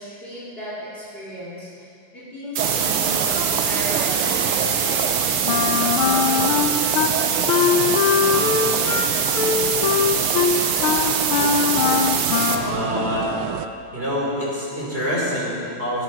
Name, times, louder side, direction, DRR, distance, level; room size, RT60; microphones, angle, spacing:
voice 1, 0.0-6.3, equal, 25° left, -8 dB, 2.8 m, -35 dB
sound 1, 2.6-12.6, right 6 dB, 55° right, 1.2 m, -23 dB
sound 2, 2.6-13.7, right 9 dB, 85° right, 1.5 m, -28 dB
Wind instrument woodwind instrument, 5.5-7.1 7.5-12.8, left 7 dB, 80° left, 1.7 m, -21 dB
voice 2, 12.5-13.3 13.9-16.0, equal, 25° right, -5 dB, 3.6 m, -26 dB
18.5 x 8.0 x 6.0 m, 2.5 s
omnidirectional pair, 2.4 m